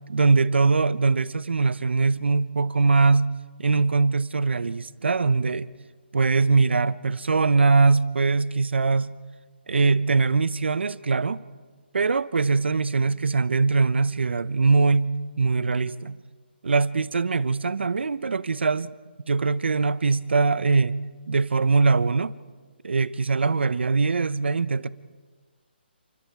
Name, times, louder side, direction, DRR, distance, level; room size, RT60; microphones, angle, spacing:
voice 1, 0.1-3.3 3.6-5.7 6.1-9.1 9.7-11.4 11.9-16.2 16.6-18.9 19.3-21.0 21.3-22.3 22.8-24.9, right 4 dB, 75° right, 0.9 m, -22 dB
29.5 x 25.0 x 4.7 m
hypercardioid pair, 175°, 6 cm